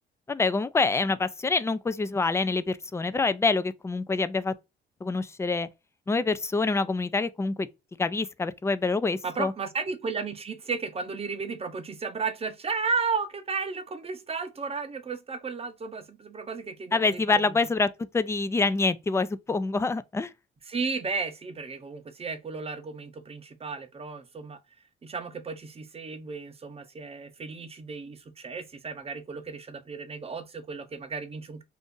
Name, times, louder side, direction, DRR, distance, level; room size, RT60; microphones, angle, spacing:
voice 1, 0.3-4.5 5.0-5.7 6.1-7.7 8.0-9.5 16.9-20.3, left 3 dB, 15° left, 0.3 m, -26 dB
voice 2, 9.2-17.6 20.7-24.6 25.0-31.6, right 4 dB, 30° right, 0.6 m, -34 dB
2.6 x 2.5 x 3.6 m
cardioid pair, 90°, 20 cm